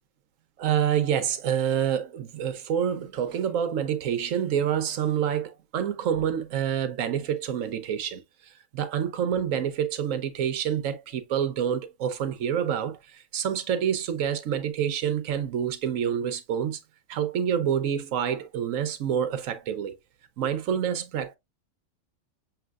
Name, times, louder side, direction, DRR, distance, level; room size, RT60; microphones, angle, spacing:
voice 1, 0.6-8.2 8.7-16.8 17.1-20.0 20.4-21.4, right 9 dB, 75° right, 1.1 m, -27 dB
6.9 x 2.8 x 2.3 m
omnidirectional pair, 1.4 m